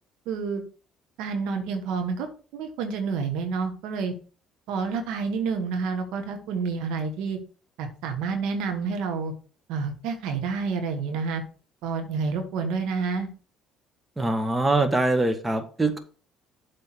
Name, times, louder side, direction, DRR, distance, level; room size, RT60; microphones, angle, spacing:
voice 1, 0.3-0.6 1.2-2.3 2.5-4.1 4.7-7.4 7.8-9.3 9.7-11.4 11.8-13.3, right 5 dB, 75° right, 6 dB, 1.4 m, -29 dB
voice 2, 14.2-16.0, right 2 dB, 15° right, 7 dB, 1.4 m, -23 dB
7.7 x 3.7 x 6.2 m, 0.38 s
supercardioid pair, 70°, 0 cm